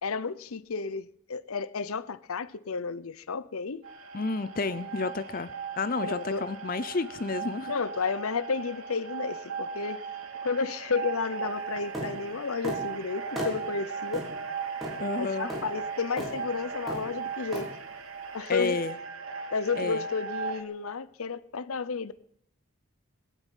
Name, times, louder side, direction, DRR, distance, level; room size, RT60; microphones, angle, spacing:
voice 1, 0.0-3.8 6.0-6.4 7.7-10.0 10.4-14.2 15.1-17.7 18.3-18.8 19.5-22.1, left 5 dB, 75° left, 0.7 m, -32 dB
sound 1, 3.8-20.6, right 5 dB, 75° right, 2.3 m, -37 dB
voice 2, 4.1-7.7 15.0-15.5 18.5-19.0 19.8-20.1, left 3 dB, 40° left, 0.6 m, -31 dB
sound 2, 11.9-12.1 12.6-12.8 13.4-13.6 14.1-14.3 14.8-15.0 15.5-15.6 16.2-16.3 16.9-17.1 17.5-17.7, equal, ahead, 4.2 m, -34 dB
19.0 x 8.2 x 9.1 m
head